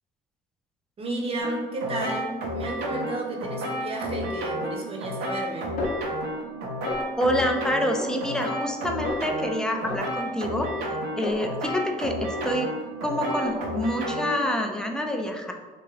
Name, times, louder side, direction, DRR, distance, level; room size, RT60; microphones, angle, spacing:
voice 1, 1.0-5.8, right 2 dB, 35° right, 0 dB, 0.6 m, -32 dB
sound 1, 1.4-14.6, equal, 80° right, 0.6 m, -32 dB
Snare drum, 5.8-6.6 6.9-7.4 7.9-8.7 9.0-9.4 9.9-12.0 12.3-12.8 13.3-14.0, left 2 dB, 60° left, 0.6 m, -36 dB
voice 2, 7.2-10.7 11.2-12.7 13.0-15.5, equal, 5° left, 3 dB, 0.3 m, -27 dB
2.8 x 2.4 x 3.1 m, 1.3 s
cardioid pair, 110°, 17 cm